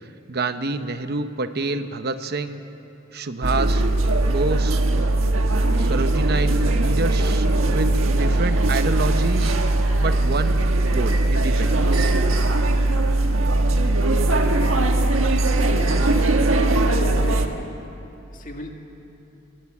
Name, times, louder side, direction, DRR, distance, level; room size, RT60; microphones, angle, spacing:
voice 1, 0.3-2.6 3.1-3.8 4.3-4.8 5.7-9.5 10.0-10.6 10.8-12.1, right 3 dB, 55° right, 9 dB, 0.9 m, -27 dB
sound 1, 3.4-17.5, right 2 dB, 85° right, 1.5 m, -20 dB
voice 2, 15.7-17.6 18.3-18.9, left 1 dB, 40° left, 2 dB, 2.1 m, -34 dB
22.0 x 18.5 x 8.6 m, 3.0 s
head